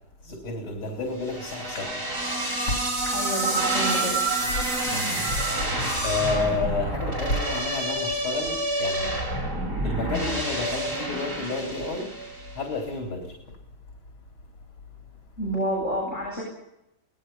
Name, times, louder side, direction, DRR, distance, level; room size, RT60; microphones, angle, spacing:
voice 1, 0.2-2.1 2.7-2.8 3.1-3.2 4.4-9.1 9.8-12.1 12.5-13.6, left 3 dB, 80° left, 1 dB, 4.2 m, -31 dB
sound 1, 1.2-12.5, right 2 dB, 50° right, 7.6 m, -28 dB
voice 2, 3.1-4.2 15.4-16.4, equal, 30° left, -4 dB, 8.5 m, -29 dB
24.5 x 19.5 x 5.5 m, 0.88 s
omnidirectional pair, 2.2 m